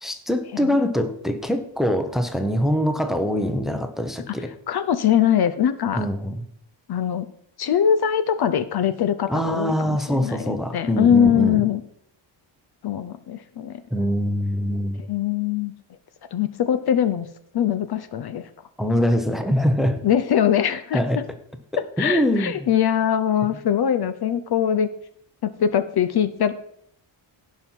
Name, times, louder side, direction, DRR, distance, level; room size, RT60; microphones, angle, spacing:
voice 1, 0.0-4.5 6.0-6.4 9.3-11.6 13.9-15.0 18.8-20.0 20.9-21.2 22.0-22.7, equal, ahead, 8 dB, 0.8 m, -23 dB
voice 2, 4.7-6.1 6.9-7.3 7.6-11.8 12.8-13.8 15.1-15.7 16.3-17.3 17.5-18.5 20.0-21.2 21.7-24.9 25.4-26.5, left 9 dB, 50° left, 13 dB, 0.7 m, -22 dB
16.5 x 5.7 x 4.5 m, 0.71 s
wide cardioid pair, 150°, 48 cm